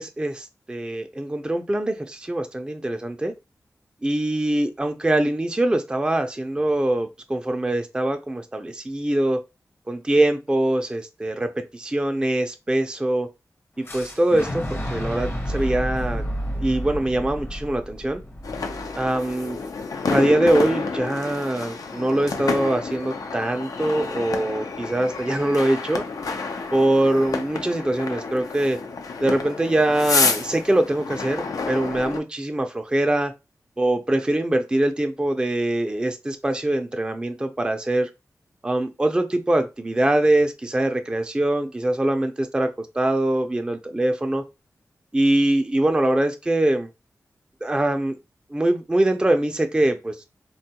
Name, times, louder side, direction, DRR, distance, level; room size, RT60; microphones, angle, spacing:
voice 1, 0.0-3.3 4.0-9.4 9.9-13.3 13.8-14.6 14.9-16.2 16.6-18.2 18.9-19.6 20.1-26.0 26.3-26.4 26.7-28.8 29.2-33.3 33.8-38.1 38.6-44.4 45.1-46.9 47.6-48.1 48.5-50.2, right 1 dB, 15° right, 0.4 m, -23 dB
Fire / Explosion, 13.8-19.7, equal, 40° left, 0.8 m, -31 dB
sound 1, 18.4-32.2, left 4 dB, 80° left, 0.4 m, -29 dB
3.5 x 2.2 x 2.8 m
wide cardioid pair, 75°, 6 cm